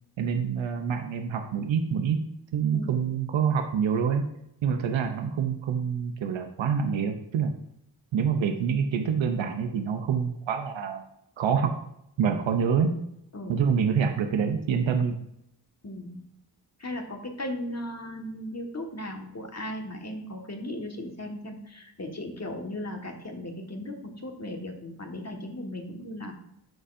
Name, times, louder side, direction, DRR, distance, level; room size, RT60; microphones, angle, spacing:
voice 1, 0.2-2.2 2.5-4.2 4.6-7.5 8.1-11.0 11.4-11.7 12.2-12.9 13.5-15.2, right 7 dB, 90° right, 5 dB, 0.7 m, -26 dB
voice 2, 13.3-13.6 15.8-16.2 16.8-26.3, left 1 dB, 35° left, 2 dB, 1.6 m, -37 dB
12.5 x 4.2 x 2.6 m, 0.77 s
cardioid pair, 40°, 45 cm